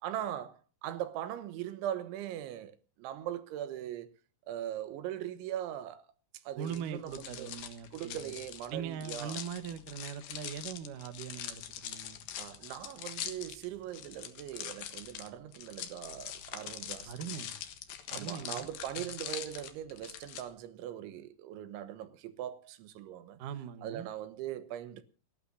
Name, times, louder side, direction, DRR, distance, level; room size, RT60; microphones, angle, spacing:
voice 1, 0.0-4.1 4.5-6.1 6.5-7.5 7.9-9.4 12.4-17.4 18.1-23.4 23.8-25.0, right 11 dB, 90° right, 3.6 m, -40 dB
sound 1, 6.6-20.4, left 10 dB, 65° left, 3.0 m, -43 dB
voice 2, 6.6-8.4 8.7-12.2 17.1-17.5 18.1-18.7 19.0-19.1 23.4-24.1, right 8 dB, 60° right, 2.4 m, -41 dB
29.0 x 12.0 x 2.7 m
omnidirectional pair, 5.2 m